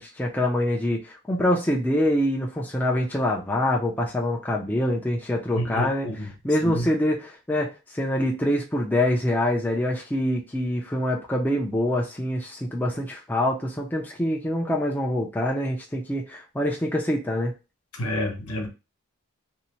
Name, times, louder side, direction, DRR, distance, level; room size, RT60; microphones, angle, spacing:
voice 1, 0.0-17.5, left 1 dB, 10° left, 0.4 m, -25 dB
voice 2, 5.6-6.3 6.6-6.9 17.9-18.7, equal, 80° left, 0.8 m, -29 dB
2.7 x 2.1 x 2.9 m
head